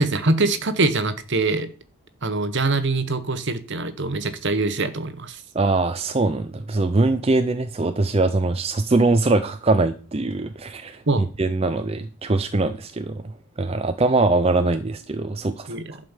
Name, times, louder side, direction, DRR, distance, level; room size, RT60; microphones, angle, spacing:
voice 1, 0.0-1.7 2.2-5.4 11.1-11.3 15.7-16.0, right 3 dB, 55° right, 12 dB, 1.2 m, -23 dB
voice 2, 5.5-13.2 13.6-16.0, right 2 dB, 25° right, 9 dB, 0.5 m, -22 dB
11.5 x 5.2 x 7.3 m, 0.37 s
head